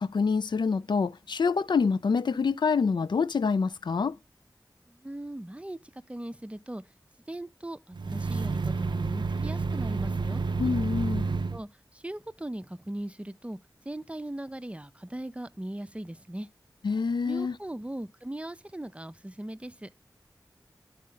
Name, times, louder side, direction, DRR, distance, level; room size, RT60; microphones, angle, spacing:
voice 1, 0.0-4.1 10.6-11.3 16.8-17.5, left 5 dB, 90° left, 0.3 m, -26 dB
voice 2, 4.9-5.8 6.1-6.8 7.3-10.4 11.5-13.6 13.9-16.5 17.2-19.9, right 1 dB, 15° right, 0.5 m, -39 dB
sound 1, 7.9-11.6, right 4 dB, 85° right, 0.4 m, -29 dB
11.5 x 4.2 x 3.7 m
wide cardioid pair, 55°, 8 cm